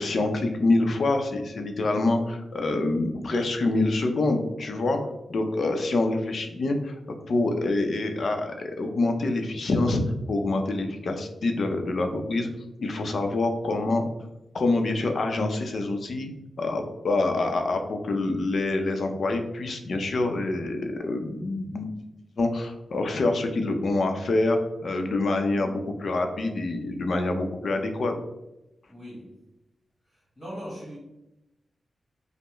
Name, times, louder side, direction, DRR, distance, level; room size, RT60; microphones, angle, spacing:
voice 1, 0.0-5.0 5.3-7.0 7.3-10.0 10.3-12.5 12.8-14.0 14.5-16.3 16.6-21.9 22.4-28.1, left 2 dB, 60° left, 5 dB, 0.6 m, -26 dB
voice 2, 28.9-29.4 30.1-31.0, equal, 20° left, -7 dB, 1.4 m, -41 dB
5.4 x 2.1 x 3.0 m, 0.92 s
wide cardioid pair, 110°, 0 cm